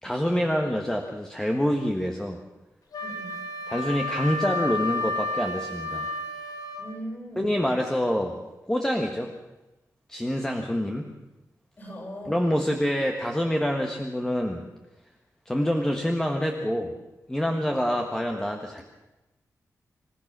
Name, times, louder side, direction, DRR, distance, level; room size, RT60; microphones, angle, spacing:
voice 1, 0.0-2.4 3.7-6.1 7.4-8.4 8.6-9.3 10.1-11.1 12.3-14.6 15.4-16.9 17.3-18.8, equal, 10° left, 2 dB, 1.5 m, -26 dB
Wind instrument woodwind instrument, 2.9-6.9, left 2 dB, 85° left, 2.8 m, -31 dB
voice 2, 3.0-3.5 6.8-7.5 11.8-12.5, equal, 35° left, 1 dB, 6.6 m, -39 dB
27.5 x 15.5 x 6.2 m, 0.99 s
wide cardioid pair, 165°, 6 cm